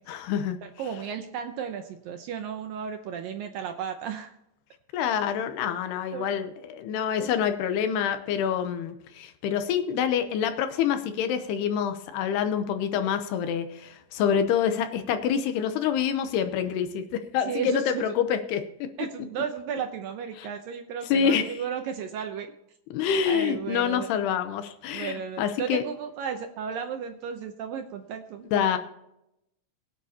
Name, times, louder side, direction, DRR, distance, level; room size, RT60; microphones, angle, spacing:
voice 1, 0.1-0.6 4.9-18.6 20.4-20.5 21.1-21.6 22.9-25.8 28.5-28.8, left 8 dB, 75° left, 9 dB, 2.7 m, -27 dB
voice 2, 0.6-4.3 6.1-6.3 7.2-7.3 17.5-18.0 19.0-22.5 23.3-24.1 24.9-28.8, right 7 dB, 80° right, 5 dB, 2.0 m, -34 dB
22.5 x 9.3 x 2.9 m, 0.83 s
omnidirectional pair, 5.1 m